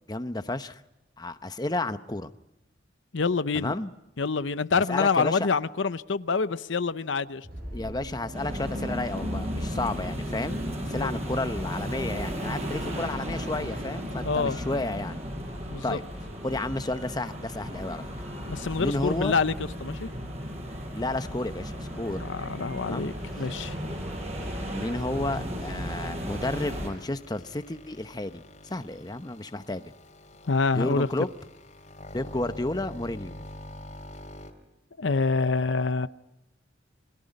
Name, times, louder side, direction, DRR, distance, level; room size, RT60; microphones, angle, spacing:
voice 1, 0.1-0.8 1.2-2.3 3.5-3.9 4.7-5.5 7.7-10.6 10.9-15.2 15.8-16.0 16.4-18.0 18.8-19.3 20.9-22.3 22.8-23.1 24.7-29.9 30.7-31.3 32.1-33.4, left 2 dB, 20° left, 10 dB, 0.9 m, -32 dB
voice 2, 3.1-3.7 4.2-7.5 11.0-11.2 14.2-14.6 15.7-16.0 18.5-19.5 19.8-20.1 22.2-23.8 30.5-31.1 35.0-36.1, left 4 dB, 75° left, 13 dB, 0.7 m, -26 dB
sound 1, 7.4-10.9, right 1 dB, 50° right, 6.9 m, -43 dB
sound 2, 8.3-26.9, equal, 35° right, 7.7 m, -34 dB
sound 3, 23.0-34.5, left 1 dB, 40° left, 3.3 m, -47 dB
30.0 x 21.5 x 5.4 m, 0.93 s
head